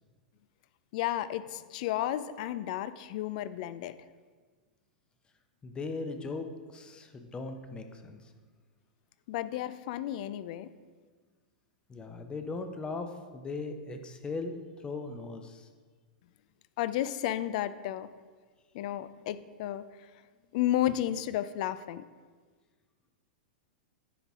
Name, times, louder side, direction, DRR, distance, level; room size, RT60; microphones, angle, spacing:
voice 1, 0.9-4.0 9.3-10.7 16.8-18.1 18.7-19.8 20.5-22.0, left 12 dB, 55° left, 15 dB, 0.3 m, -32 dB
voice 2, 5.6-8.3 11.9-15.7, left 3 dB, 20° left, 7 dB, 0.7 m, -39 dB
9.9 x 4.1 x 3.6 m, 1.5 s
hypercardioid pair, 105°, 5 cm